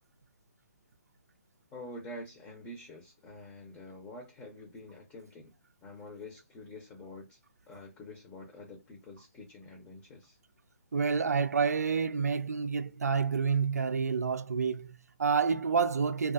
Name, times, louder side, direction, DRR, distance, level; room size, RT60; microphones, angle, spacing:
voice 1, 1.7-5.5 5.8-7.4 7.7-10.4, left 1 dB, 15° left, 0.5 m, -47 dB
voice 2, 10.9-16.3, right 5 dB, 80° right, 0.4 m, -28 dB
2.4 x 2.3 x 2.3 m
hypercardioid pair, 145°, 8 cm